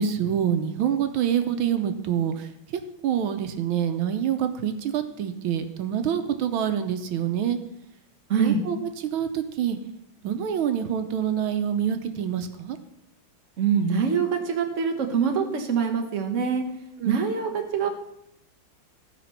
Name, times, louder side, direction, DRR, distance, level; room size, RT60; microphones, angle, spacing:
voice 1, 0.0-2.5 3.0-7.6 8.4-8.8 9.1-9.8 10.2-12.8 17.0-17.2, right 9 dB, 85° right, 8 dB, 1.6 m, -26 dB
voice 2, 8.3-8.6 13.6-16.6 17.0-17.9, right 6 dB, 45° right, 4 dB, 1.3 m, -24 dB
14.5 x 5.1 x 5.7 m, 0.79 s
omnidirectional pair, 2.2 m